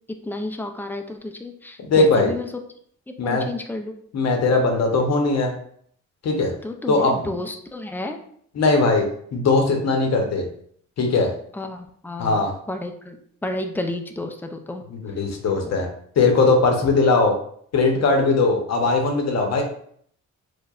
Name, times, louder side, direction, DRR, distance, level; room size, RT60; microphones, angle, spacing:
voice 1, 0.2-2.5 3.1-4.0 6.6-8.2 11.5-14.8 15.6-15.7, left 2 dB, 5° left, 4 dB, 0.3 m, -31 dB
voice 2, 1.8-2.3 3.2-3.4 4.1-5.5 6.2-6.5 6.9-7.3 8.6-9.1 9.3-10.5 11.0-11.3 12.2-12.5 14.9-15.9 16.2-17.3 17.7-19.7, left 3 dB, 60° left, 2 dB, 0.8 m, -19 dB
4.6 x 2.2 x 2.4 m, 0.62 s
cardioid pair, 115°, 30 cm